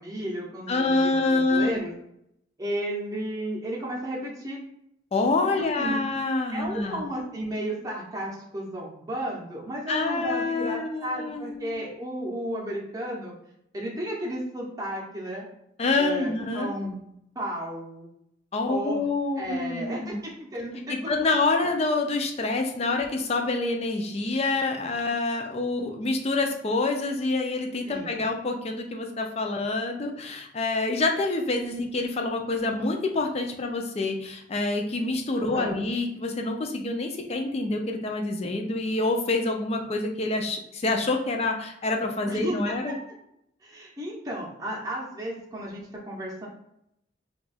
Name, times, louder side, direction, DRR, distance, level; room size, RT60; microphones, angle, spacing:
voice 1, 0.0-1.9 2.6-4.6 5.6-6.0 6.5-13.3 13.7-15.5 16.0-17.0 17.3-18.1 18.7-19.1 19.4-20.8 27.9-28.2 35.4-35.8 42.3-42.9 43.6-46.5, right 1 dB, 20° right, -4 dB, 0.7 m, -33 dB
voice 2, 0.7-1.8 5.1-7.0 9.9-11.7 15.8-16.7 18.5-20.2 20.9-43.0, left 3 dB, 35° left, 3 dB, 0.4 m, -27 dB
2.8 x 2.3 x 4.1 m, 0.76 s
head